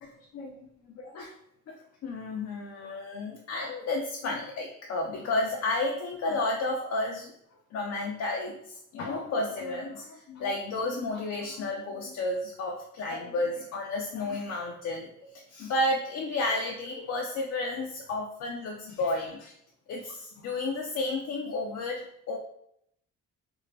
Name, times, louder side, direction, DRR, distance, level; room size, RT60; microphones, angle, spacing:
voice 1, 0.9-1.3 1.7-1.8 2.0-7.3 7.7-19.5 19.9-22.4, left 2 dB, 55° left, -1 dB, 0.5 m, -32 dB
2.5 x 2.1 x 3.2 m, 0.71 s
cardioid pair, 90°, 30 cm